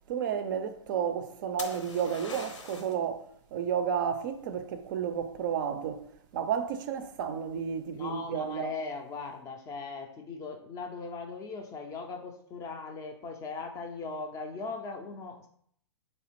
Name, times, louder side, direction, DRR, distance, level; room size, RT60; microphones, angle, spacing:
voice 1, 0.1-3.2 3.5-6.0 6.3-8.7, right 7 dB, 45° right, 0.4 m, -32 dB
sound 1, 1.6-3.0 6.7-7.2, left 3 dB, 75° left, 0.7 m, -43 dB
voice 2, 7.9-15.5, left 4 dB, 20° left, 0.4 m, -39 dB
4.1 x 3.4 x 3.0 m
figure-of-eight pair, 115°, 16 cm